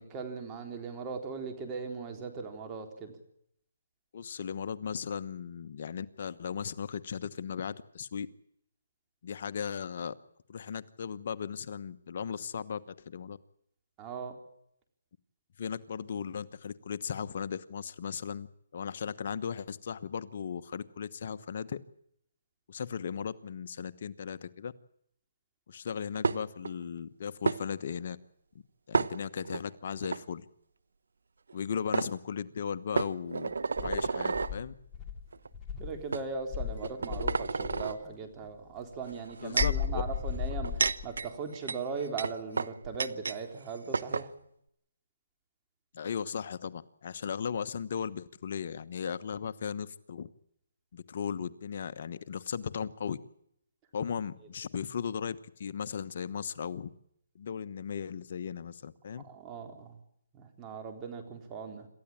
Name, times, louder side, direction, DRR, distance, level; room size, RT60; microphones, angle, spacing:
voice 1, 0.0-3.2 14.0-14.3 35.8-44.3 59.2-60.0 60.3-61.9, right 5 dB, 20° right, 4 dB, 3.9 m, -39 dB
voice 2, 4.1-8.3 9.2-10.1 10.5-13.4 15.6-18.5 18.7-21.8 22.7-24.7 25.7-28.2 28.9-30.5 31.5-34.7 39.4-40.0 45.9-50.3 50.9-53.2 53.9-56.9 57.3-59.2, left 7 dB, 50° left, 12 dB, 1.1 m, -37 dB
sound 1, 26.2-26.7 27.4-27.6 28.9-29.6 30.0-30.2 31.5-31.6 31.9-32.1 32.9-34.5 35.3-35.5 36.1-36.3 36.8-38.0 39.1-39.8 40.5-43.4 43.7-43.8 43.9-44.3, right 4 dB, 80° right, 1.0 m, -31 dB
Insect, 33.8-36.0 36.5-37.9 39.6-41.2, left 8 dB, 10° left, 2.8 m, -35 dB
27.5 x 14.0 x 8.8 m, 0.73 s
hypercardioid pair, 160°, 0 cm